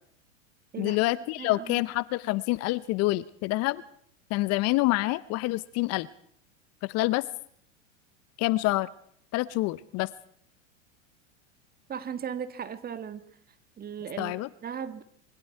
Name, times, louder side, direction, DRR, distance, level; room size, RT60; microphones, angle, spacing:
voice 1, 0.8-3.8 4.3-6.1 6.8-7.2 8.4-8.9 9.3-10.1 14.2-14.5, left 19 dB, 40° left, 18 dB, 0.8 m, -27 dB
voice 2, 1.4-1.8 11.9-13.2 13.8-14.3 14.6-15.0, right 8 dB, 25° right, 12 dB, 1.7 m, -36 dB
25.5 x 24.0 x 4.6 m, 0.65 s
hypercardioid pair, 100°, 38 cm